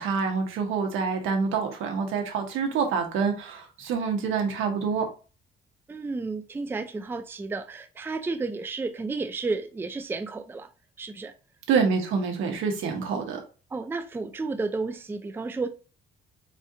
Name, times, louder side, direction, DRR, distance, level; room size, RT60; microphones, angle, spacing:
voice 1, 0.0-5.1 11.7-13.4, right 5 dB, 85° right, 1.0 m, -26 dB
voice 2, 5.9-10.7 11.0-11.3 13.7-15.7, right 3 dB, 10° right, 0.3 m, -32 dB
4.2 x 2.4 x 2.7 m
cardioid pair, 90°, 20 cm